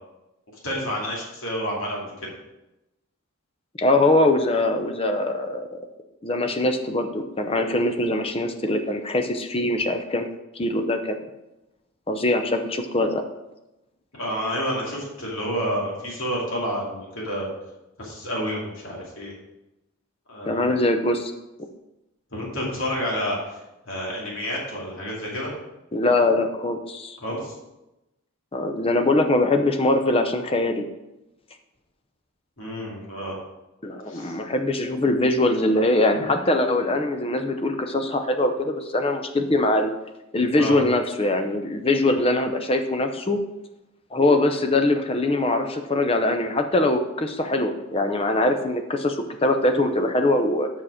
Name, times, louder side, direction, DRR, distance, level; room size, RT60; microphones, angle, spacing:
voice 1, 0.6-2.3 14.1-17.5 18.0-19.4 20.3-20.8 22.3-23.6 23.8-25.5 27.2-27.5 32.6-33.4 34.1-34.4 36.1-36.2 40.6-40.8, equal, 65° left, -4 dB, 2.6 m, -29 dB
voice 2, 3.8-5.8 6.2-10.3 10.5-11.2 12.1-13.2 20.4-21.3 25.9-27.2 28.5-30.8 33.8-39.9 40.3-43.4 44.1-50.7, left 2 dB, 25° left, 6 dB, 0.6 m, -22 dB
7.3 x 5.8 x 5.0 m, 0.96 s
head